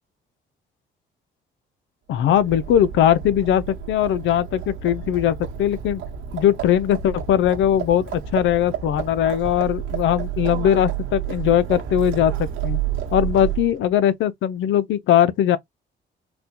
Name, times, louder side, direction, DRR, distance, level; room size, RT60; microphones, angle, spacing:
voice 1, 2.1-6.0 6.3-12.8 13.1-15.6, left 10 dB, 75° left, 0.5 m, -20 dB
Livestock farm animals working animals, 2.2-13.9, right 10 dB, 85° right, 1.1 m, -30 dB
4.1 x 2.2 x 2.8 m
cardioid pair, 90°, 20 cm